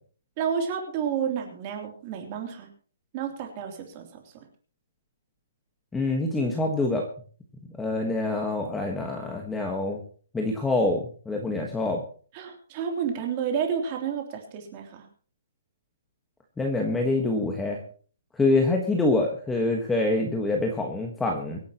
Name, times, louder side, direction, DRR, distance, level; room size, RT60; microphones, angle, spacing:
voice 1, 0.4-2.7 3.1-4.4 12.3-15.1, right 7 dB, 25° right, 3 dB, 3.1 m, -30 dB
voice 2, 5.9-7.1 7.8-10.0 10.3-12.0 16.6-17.8 18.4-21.6, left 2 dB, 5° left, 1 dB, 1.4 m, -25 dB
24.5 x 10.5 x 3.0 m, 0.43 s
hypercardioid pair, 175°, 0 cm